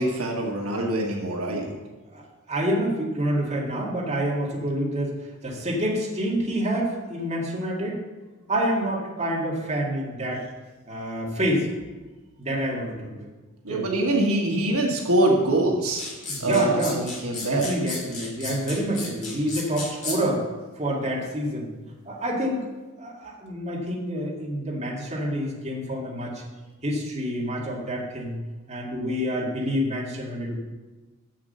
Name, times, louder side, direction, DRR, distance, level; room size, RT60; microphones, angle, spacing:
voice 1, 0.0-1.7 13.6-16.0 16.4-17.7, right 1 dB, 75° right, 0 dB, 1.4 m, -24 dB
voice 2, 2.1-5.2 5.4-8.0 8.5-10.5 10.9-11.7 12.4-13.3 13.7-13.9 16.2-17.0 17.5-20.5 20.8-21.7 22.1-22.7 23.0-26.4 26.8-28.4 28.7-30.5, equal, 30° right, -3 dB, 2.1 m, -27 dB
sound 1, 16.0-20.2, left 3 dB, 35° left, 2.8 m, -33 dB
7.4 x 7.3 x 6.7 m, 1.2 s
head